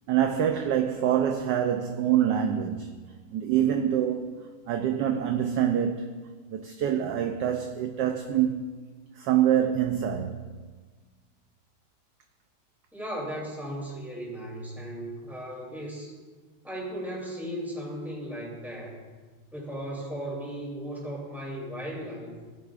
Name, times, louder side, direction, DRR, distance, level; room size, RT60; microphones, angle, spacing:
voice 1, 0.1-2.9 3.3-4.4 4.7-6.1 6.5-8.7 9.2-10.4, right 10 dB, 70° right, 1.1 m, -25 dB
voice 2, 12.9-16.1 16.6-19.0 19.5-22.4, equal, ahead, 2.8 m, -36 dB
17.5 x 9.4 x 2.5 m
omnidirectional pair, 2.3 m